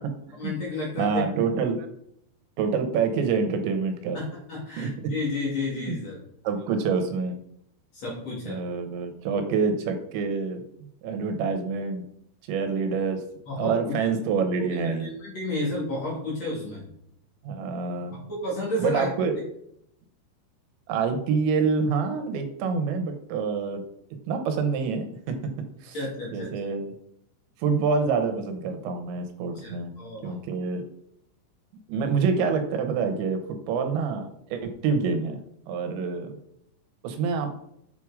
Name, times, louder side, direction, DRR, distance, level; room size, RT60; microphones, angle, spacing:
voice 1, 0.4-1.5 4.1-6.2 7.9-8.7 13.5-13.9 14.6-16.9 18.1-19.1 25.9-26.5 29.6-30.4, left 2 dB, 45° left, -4 dB, 2.9 m, -32 dB
voice 2, 1.0-1.9 2.6-4.2 4.8-4.9 5.7-6.0 6.4-7.4 8.5-10.6 11.0-12.0 12.5-13.2 13.6-15.1 17.4-18.1 18.8-19.3 20.9-23.8 24.3-25.4 25.8-26.0 26.3-26.9 27.6-29.9 30.2-30.8 31.9-33.4 33.7-35.4 35.7-36.3 37.0-37.5, right 5 dB, 80° right, 6 dB, 3.2 m, -26 dB
7.8 x 6.0 x 4.9 m, 0.73 s
omnidirectional pair, 5.2 m